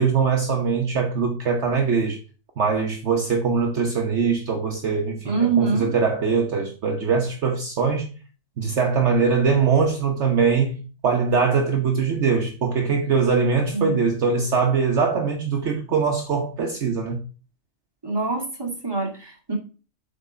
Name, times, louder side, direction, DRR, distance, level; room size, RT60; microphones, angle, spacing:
voice 1, 0.0-2.2 2.6-8.1 8.6-10.8 11.0-17.2, right 5 dB, 60° right, 1.3 m, -22 dB
voice 2, 5.2-5.9 13.7-14.0 18.0-19.5, right 4 dB, 20° right, 2.4 m, -25 dB
7.7 x 4.1 x 5.5 m
omnidirectional pair, 1.4 m